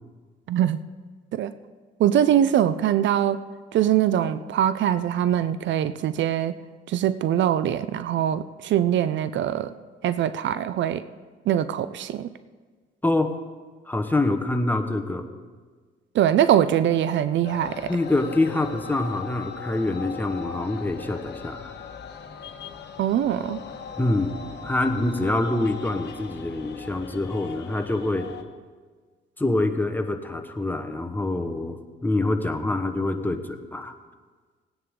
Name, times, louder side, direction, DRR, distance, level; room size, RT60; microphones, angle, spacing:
voice 1, 0.5-0.8 1.3-1.5 2.0-3.4 3.7-6.5 6.9-9.7 10.0-11.0 11.5-12.3 16.1-17.9 23.0-23.6, right 10 dB, 70° right, 14 dB, 0.5 m, -22 dB
voice 2, 13.0-13.4 13.9-15.3 17.9-21.7 24.0-24.3 24.6-28.3 29.4-33.9, left 2 dB, 10° left, 6 dB, 1.1 m, -25 dB
sound 1, 17.4-28.4, left 7 dB, 60° left, 1.2 m, -39 dB
19.0 x 9.6 x 3.7 m, 1.5 s
cardioid pair, 90°, 20 cm